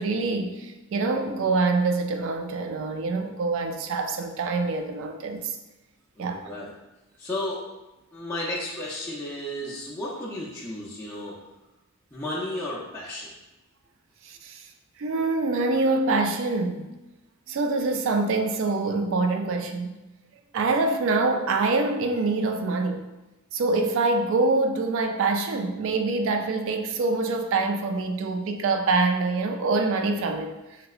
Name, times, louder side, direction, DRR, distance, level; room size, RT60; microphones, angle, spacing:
voice 1, 0.0-5.6 6.2-6.5 14.2-14.7 15.0-16.9 17.5-20.0 20.5-23.0 23.5-30.8, right 3 dB, 65° right, 6 dB, 0.3 m, -25 dB
voice 2, 6.2-6.7 7.2-7.6 8.1-11.4 12.1-13.3, left 1 dB, 10° left, -8 dB, 0.4 m, -33 dB
3.1 x 2.8 x 2.4 m, 1.0 s
head